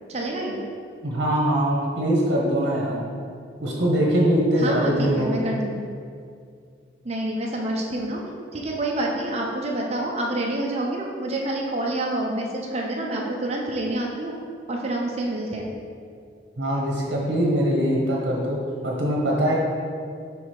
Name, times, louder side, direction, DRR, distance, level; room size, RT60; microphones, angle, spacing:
voice 1, 0.1-0.6 4.6-5.9 7.0-8.2 8.5-14.3 14.7-15.7, right 1 dB, 35° right, -1 dB, 0.7 m, -27 dB
voice 2, 1.0-3.0 3.6-5.5 16.6-19.6, equal, 60° right, -3 dB, 1.2 m, -22 dB
6.3 x 3.5 x 4.8 m, 2.3 s
head